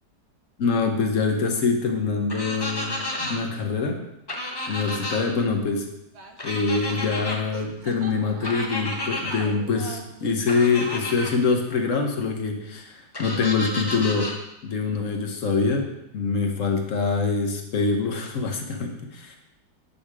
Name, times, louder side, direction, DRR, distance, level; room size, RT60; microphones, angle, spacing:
voice 1, 0.6-4.0 4.7-5.9 6.4-14.3 14.6-15.8 16.1-19.3, left 4 dB, 55° left, 3 dB, 1.0 m, -25 dB
sound 1, 2.3-3.3 4.3-5.2 6.4-7.4 8.4-9.4 10.5-11.3 13.1-14.3, left 1 dB, 30° left, 0.5 m, -31 dB
sound 2, 6.1-7.2 7.5-12.2, right 4 dB, 60° right, 0.7 m, -44 dB
9.4 x 3.5 x 4.9 m, 0.86 s
omnidirectional pair, 1.9 m